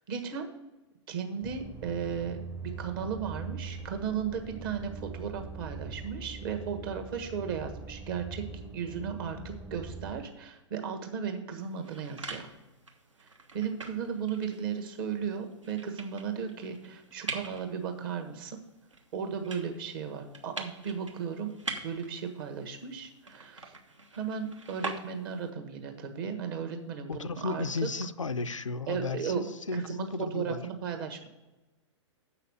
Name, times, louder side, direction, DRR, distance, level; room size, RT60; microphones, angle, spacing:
voice 1, 0.1-0.5 1.1-12.5 13.2-18.6 19.1-21.5 21.8-23.7 24.1-27.9 28.9-29.4 29.7-31.3, right 7 dB, 45° right, 1.4 m, -35 dB
sound 1, 1.4-10.2, right 4 dB, 15° right, 0.7 m, -42 dB
sound 2, 11.6-25.5, right 3 dB, 80° right, 1.1 m, -44 dB
voice 2, 27.1-30.7, left 3 dB, 85° left, 0.4 m, -34 dB
7.2 x 5.8 x 7.6 m
figure-of-eight pair, 110°, 16 cm